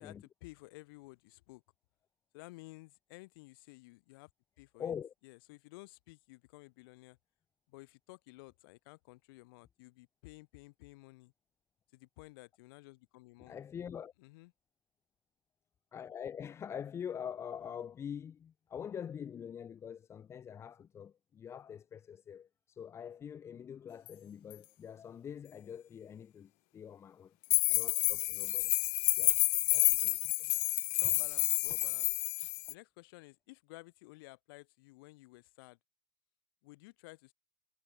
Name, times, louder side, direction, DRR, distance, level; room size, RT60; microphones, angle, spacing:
voice 1, 0.0-1.6 2.3-4.3 4.6-4.9 5.2-7.2 7.7-11.3 11.9-13.6 14.2-14.5 31.0-32.1 32.4-35.8 36.6-37.3, left 23 dB, 70° left, 7.2 m, -54 dB
voice 2, 4.8-5.1 13.4-14.1 15.9-27.3 27.7-28.7 29.1-29.4 29.7-30.6, left 8 dB, 20° left, 4.2 m, -45 dB
sound 1, 24.1-24.2 24.5-24.6 27.5-32.7, left 40 dB or more, 50° left, 0.4 m, -29 dB
supercardioid pair, 170°, 12 cm